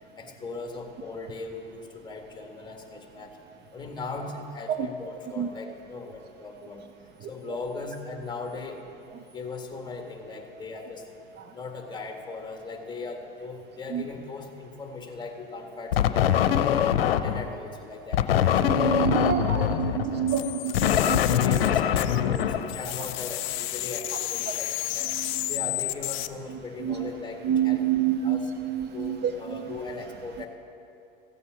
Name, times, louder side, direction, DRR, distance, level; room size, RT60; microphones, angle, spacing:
voice 1, 0.2-3.3 3.7-6.9 7.3-8.8 9.3-11.0 11.5-16.4 16.8-19.0 19.5-20.0 20.3-20.5 21.2-25.1 25.5-27.8 28.2-28.5 28.9-30.5, left 3 dB, 15° left, 3 dB, 1.9 m, -39 dB
sound 1, 15.9-17.5 18.1-23.3, left 9 dB, 80° left, 0.7 m, -23 dB
voice 2, 18.6-21.2 21.5-21.6 25.1-25.5 26.8-27.1 27.4-29.3, right 9 dB, 35° right, 7 dB, 0.7 m, -27 dB
sound 2, 20.3-22.4 22.7-26.3, left 16 dB, 45° left, 0.6 m, -32 dB
15.0 x 8.2 x 6.1 m, 2.6 s
hypercardioid pair, 95°, 29 cm